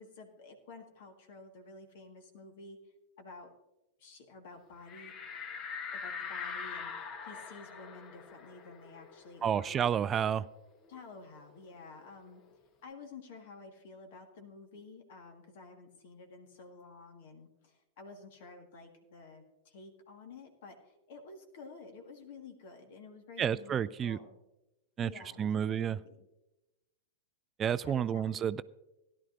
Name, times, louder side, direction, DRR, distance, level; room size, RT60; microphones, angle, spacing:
voice 1, 0.0-2.8 3.2-3.5 4.0-5.1 5.9-9.9 10.9-12.4 12.8-24.4 25.0-26.3 27.8-28.4, left 4 dB, 55° left, 1.8 m, -51 dB
sound 1, 4.9-10.1 10.4-10.5 10.8-12.5, left 6 dB, 35° left, 1.1 m, -43 dB
voice 2, 9.4-10.5 23.4-24.2 25.0-25.1 25.4-26.0 27.6-28.6, right 8 dB, 25° right, 0.3 m, -30 dB
17.0 x 11.0 x 2.6 m
figure-of-eight pair, 95°, 0 cm